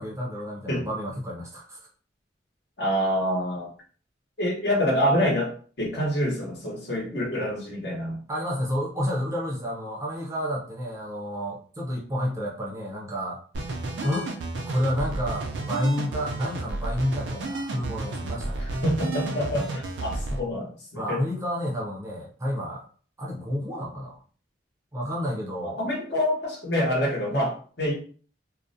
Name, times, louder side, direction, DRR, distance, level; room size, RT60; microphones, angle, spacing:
voice 1, 0.0-1.8 8.3-13.4 14.0-14.3 14.7-18.6 20.3-20.4 20.9-22.9 23.2-24.2 24.9-25.8, equal, 15° right, -2 dB, 0.5 m, -30 dB
voice 2, 2.8-3.7 4.4-5.5 5.8-8.2 18.8-21.2 25.8-27.9, equal, 60° left, -2 dB, 0.9 m, -26 dB
sound 1, 13.5-20.4, right 2 dB, 75° right, 0.4 m, -32 dB
2.4 x 2.0 x 2.6 m, 0.42 s
head